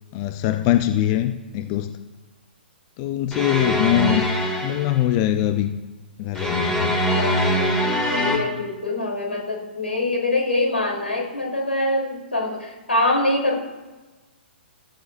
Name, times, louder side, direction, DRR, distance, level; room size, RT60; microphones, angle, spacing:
voice 1, 0.1-2.0 3.0-4.2 4.6-5.7 6.2-7.0, left 12 dB, 30° left, 8 dB, 0.6 m, -22 dB
sound 1, 3.3-5.0 6.4-8.4, equal, 10° left, 2.6 m, -23 dB
voice 2, 7.0-7.8 8.1-13.6, left 2 dB, 80° left, 0 dB, 3.5 m, -24 dB
14.5 x 14.0 x 2.6 m, 1.2 s
figure-of-eight pair, 120°, 6 cm